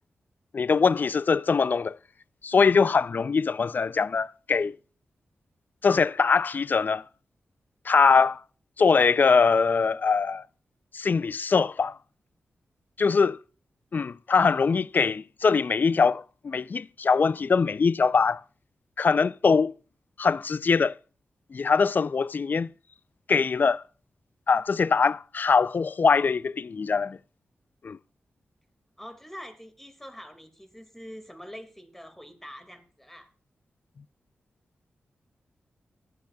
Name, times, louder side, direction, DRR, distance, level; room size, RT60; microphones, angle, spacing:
voice 1, 0.5-2.0 2.4-4.7 5.8-7.0 7.9-8.4 8.8-10.4 10.9-12.0 13.0-13.4 13.9-18.4 19.0-19.7 20.2-20.9 21.5-22.7 23.3-23.8 24.5-27.2 27.8-28.0, left 5 dB, 50° left, 0.4 m, -22 dB
voice 2, 29.0-33.3, equal, 5° left, 2.0 m, -44 dB
19.0 x 7.9 x 2.3 m
cardioid pair, 55°, 4 cm